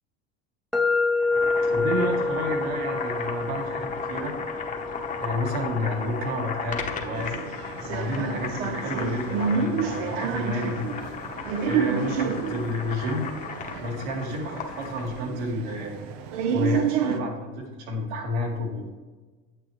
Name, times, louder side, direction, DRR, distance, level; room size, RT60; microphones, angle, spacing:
sound 1, 0.7-8.6, left 3 dB, ahead, 0.5 m, -29 dB
Boiling, 1.2-15.2, left 5 dB, 25° left, 0.9 m, -35 dB
voice 1, 1.6-4.3 5.2-7.4 7.8-10.9 11.6-13.3 13.8-16.0 16.5-18.9, left 1 dB, 70° right, 1 dB, 2.0 m, -30 dB
sound 2, 7.1-17.2, right 6 dB, 90° right, 0.8 m, -30 dB
8.9 x 7.5 x 3.1 m, 1.3 s
cardioid pair, 145°, 30 cm